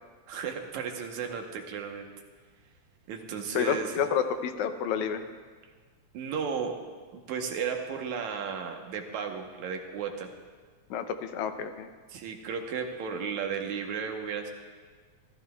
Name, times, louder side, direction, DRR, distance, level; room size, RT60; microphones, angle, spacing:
voice 1, 0.3-2.1 3.1-4.0 6.1-6.8 7.1-10.3 12.1-14.5, right 6 dB, 80° right, 3 dB, 2.5 m, -34 dB
voice 2, 3.6-5.2 10.9-11.9, left 7 dB, 80° left, 8 dB, 2.1 m, -29 dB
26.5 x 14.5 x 2.4 m, 1.5 s
omnidirectional pair, 3.3 m